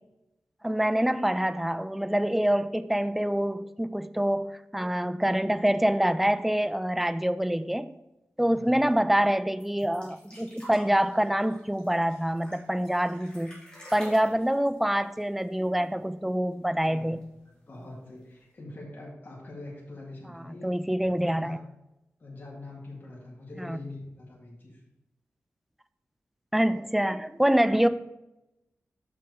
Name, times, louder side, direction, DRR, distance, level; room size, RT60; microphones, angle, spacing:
voice 1, 0.6-7.9 8.4-13.6 13.9-17.2 20.6-21.6 23.6-23.8 26.5-27.9, equal, 5° right, 12 dB, 0.3 m, -26 dB
voice 2, 8.4-8.8 15.5-15.6 16.7-20.7 21.2-21.6 22.2-24.8 27.7-27.9, left 2 dB, 45° left, -3 dB, 1.9 m, -44 dB
sound 1, 9.6-16.0 16.3-16.4 16.7-17.4 18.2-18.3, equal, 20° left, 3.0 m, -49 dB
6.1 x 6.1 x 4.7 m, 0.93 s
wide cardioid pair, 115°, 5 cm